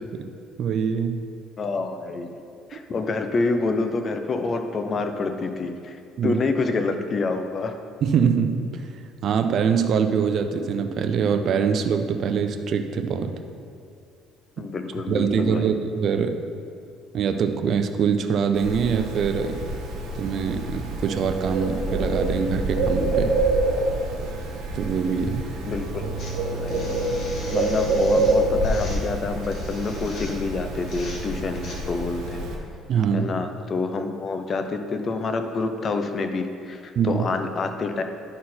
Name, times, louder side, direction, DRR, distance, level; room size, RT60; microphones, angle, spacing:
voice 1, 0.6-1.2 6.2-6.4 8.0-8.9 9.2-13.3 15.1-16.4 17.1-19.6 20.2-23.3 24.7-25.5 32.9-33.3 37.0-37.2, right 6 dB, 50° right, 7 dB, 0.5 m, -23 dB
voice 2, 1.6-2.3 2.7-7.8 14.6-15.7 25.6-26.1 26.4-26.9 27.5-32.4 33.1-38.0, left 3 dB, 35° left, 6 dB, 0.6 m, -27 dB
Bird, 18.5-32.5, right 2 dB, 90° right, 1.5 m, -26 dB
sound 1, 26.2-31.8, left 2 dB, 55° left, 1.6 m, -42 dB
11.0 x 4.2 x 4.3 m, 2.4 s
cardioid pair, 120°, 0 cm